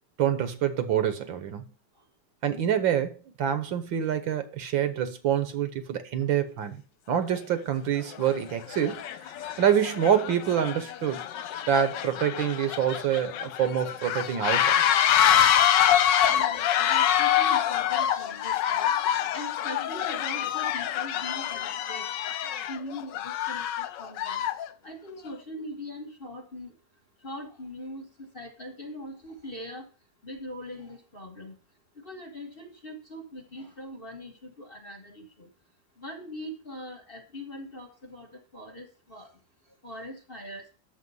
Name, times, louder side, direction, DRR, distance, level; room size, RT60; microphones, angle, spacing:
voice 1, 0.2-1.7 2.4-6.8 7.1-9.0 9.6-11.2 11.7-14.8, right 9 dB, 70° right, 1.8 m, -26 dB
sound 1, 7.3-7.4 8.1-8.3 8.7-24.7, left 10 dB, 70° left, 1.3 m, -26 dB
voice 2, 16.3-22.1 22.7-24.4 24.8-26.7 27.2-29.8 30.2-31.5 32.0-35.5 36.0-39.3 39.8-40.6, left 1 dB, 30° left, 1.3 m, -41 dB
9.6 x 7.2 x 5.5 m
omnidirectional pair, 2.2 m